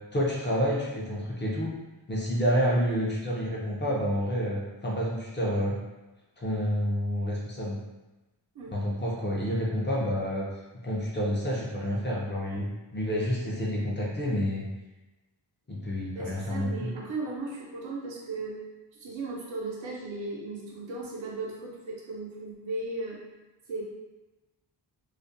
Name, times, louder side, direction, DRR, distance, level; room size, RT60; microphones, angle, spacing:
voice 1, 0.1-1.7 2.1-5.8 6.4-7.8 8.7-10.5 10.8-14.6 15.7-16.9, equal, 25° left, -5 dB, 0.4 m, -29 dB
voice 2, 16.1-18.6 19.0-23.2 23.7-23.8, right 2 dB, 90° right, -3 dB, 0.7 m, -36 dB
2.4 x 2.1 x 2.6 m, 1.1 s
wide cardioid pair, 145°, 45 cm